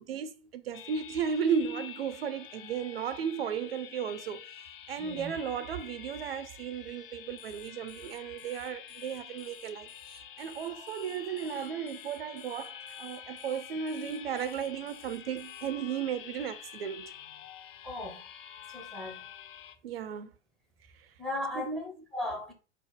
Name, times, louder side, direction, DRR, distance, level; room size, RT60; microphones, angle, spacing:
voice 1, 0.0-17.1 19.8-20.3 21.0-21.1 21.5-21.8, right 7 dB, 55° right, 0.5 m, -35 dB
sound 1, 0.7-19.8, left 10 dB, 50° left, 0.5 m, -48 dB
voice 2, 5.0-5.3 17.8-18.3 18.7-19.2 21.2-22.5, left 1 dB, ahead, 0.5 m, -37 dB
Alarm, 7.3-15.7, left 6 dB, 70° left, 1.3 m, -56 dB
4.1 x 2.8 x 3.5 m
figure-of-eight pair, 100°, 36 cm